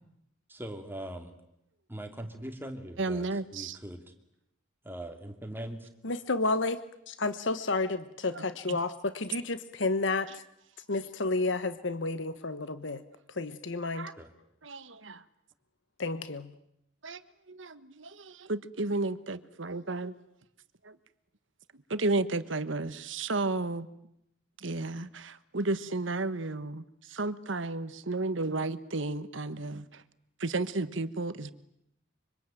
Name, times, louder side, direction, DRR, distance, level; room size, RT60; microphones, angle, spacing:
voice 1, 0.5-1.3 1.9-4.1 4.8-5.9 14.2-14.3, right 1 dB, 10° right, 5 dB, 2.7 m, -41 dB
voice 2, 3.0-3.8 8.3-8.8 13.9-14.1 14.6-15.2 17.0-17.2 17.5-20.1 20.8-21.0 21.9-23.9 24.6-30.0 30.4-31.5, right 2 dB, 70° right, 13 dB, 1.3 m, -33 dB
voice 3, 6.0-6.8 7.1-10.4 10.9-13.0 13.4-14.1 16.0-16.5, left 3 dB, 65° left, 12 dB, 1.2 m, -31 dB
25.5 x 25.0 x 9.1 m, 0.77 s
head